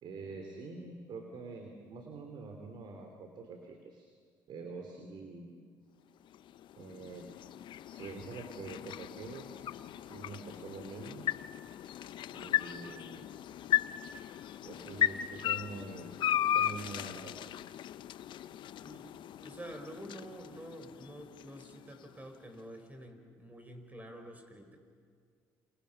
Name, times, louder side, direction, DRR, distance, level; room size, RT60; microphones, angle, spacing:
voice 1, 0.0-4.1 4.5-5.5 6.8-7.3 7.9-11.3 12.3-13.3 14.6-16.1 16.5-17.3, right 4 dB, 60° right, 4 dB, 3.0 m, -45 dB
sound 1, 6.2-22.4, left 11 dB, 65° left, 0.7 m, -37 dB
voice 2, 19.4-24.8, equal, 20° right, 5 dB, 5.3 m, -48 dB
29.0 x 28.0 x 5.9 m, 2.1 s
supercardioid pair, 70°, 9 cm